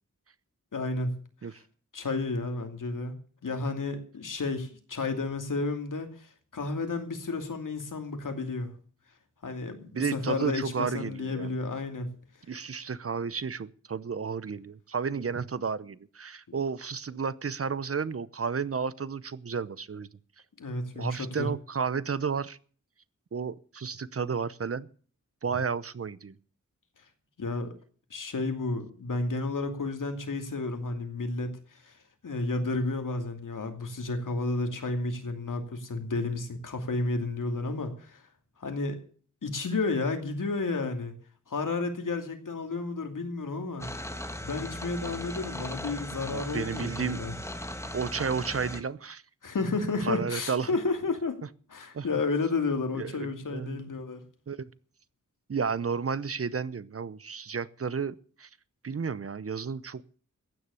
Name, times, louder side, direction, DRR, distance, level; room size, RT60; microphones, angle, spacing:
voice 1, 0.7-1.2 1.4-1.6 1.9-3.2 3.4-8.7 9.4-12.1 20.6-21.5 27.4-27.7 28.1-31.9 32.2-38.2 38.6-39.0 39.4-41.1 41.5-43.9 44.4-47.3 49.4-51.4 51.7-54.2, left 3 dB, 85° left, 2.7 m, -32 dB
voice 2, 9.9-11.6 12.5-20.1 21.0-22.6 23.3-24.9 25.4-26.3 46.2-47.3 47.9-49.2 50.0-50.7 51.9-52.1 52.9-53.8 54.5-54.7 55.5-58.5 58.8-60.1, right 6 dB, 50° right, 0.8 m, -32 dB
sound 1, 43.8-48.8, left 1 dB, 10° left, 1.6 m, -38 dB
15.5 x 9.9 x 7.0 m
wide cardioid pair, 115°, 31 cm